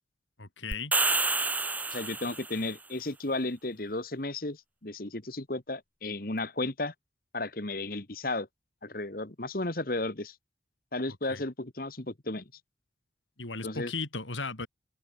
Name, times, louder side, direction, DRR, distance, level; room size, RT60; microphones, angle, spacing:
voice 1, 0.4-0.9 11.1-11.4 13.4-14.7, left 3 dB, 90° left, 4.0 m, -36 dB
sound 1, 0.7-2.6, right 3 dB, 10° right, 0.8 m, -28 dB
voice 2, 1.9-6.9 7.3-8.5 8.8-10.3 10.9-12.4 13.6-13.9, left 2 dB, 50° left, 1.7 m, -34 dB
head